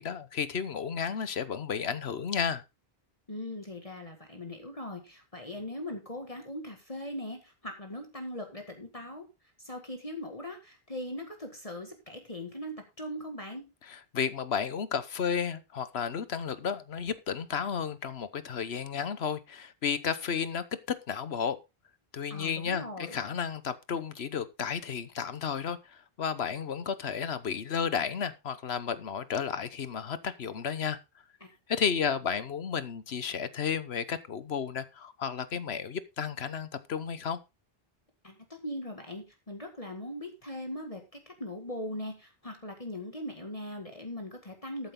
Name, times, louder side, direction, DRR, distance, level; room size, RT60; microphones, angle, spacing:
voice 1, 0.0-2.6 13.8-20.6 21.1-21.6 22.1-31.0 31.7-37.4, left 7 dB, 80° left, 1.3 m, -32 dB
voice 2, 3.3-9.3 9.6-13.6 22.3-23.2 31.4-31.5 38.2-44.9, left 1 dB, 35° left, 2.1 m, -40 dB
13.5 x 8.6 x 3.7 m
omnidirectional pair, 1.1 m